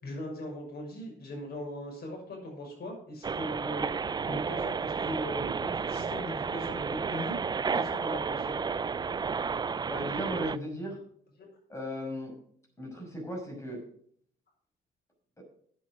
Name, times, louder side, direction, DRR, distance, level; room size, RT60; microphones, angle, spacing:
voice 1, 0.0-3.9 4.3-7.4 7.7-8.6, left 1 dB, 50° left, 0 dB, 6.3 m, -39 dB
sound 1, 3.2-10.6, right 5 dB, 20° right, 0.3 m, -32 dB
voice 2, 9.9-11.0 11.7-12.4 12.8-13.8 15.4-15.5, equal, 15° left, 1 dB, 5.8 m, -36 dB
9.6 x 8.7 x 6.3 m, 0.63 s
cardioid pair, 90°, 20 cm